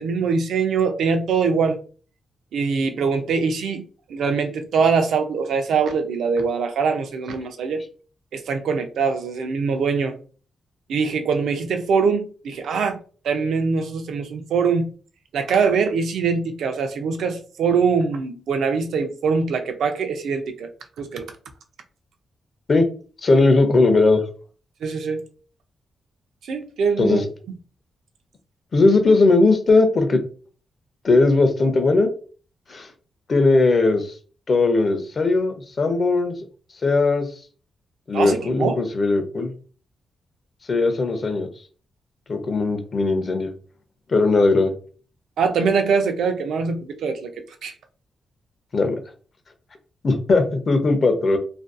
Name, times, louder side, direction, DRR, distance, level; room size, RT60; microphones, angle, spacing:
voice 1, 0.0-1.8 2.5-3.8 4.1-7.8 8.3-10.2 10.9-13.0 13.2-14.9 15.3-20.7 21.0-21.3 24.8-25.2 26.5-27.2 28.8-28.9 38.1-38.8 45.4-47.3 47.6-47.7, right 5 dB, 85° right, 6 dB, 0.4 m, -23 dB
voice 2, 23.2-24.2 27.0-27.3 28.7-30.2 31.0-32.1 32.7-32.9 33.3-34.1 34.5-36.3 36.8-37.3 38.1-39.5 40.7-41.5 42.3-43.5 44.1-44.7 48.7-49.0 50.0-51.4, left 3 dB, 35° left, 6 dB, 0.5 m, -18 dB
2.5 x 2.2 x 2.4 m, 0.39 s
wide cardioid pair, 160°, 0 cm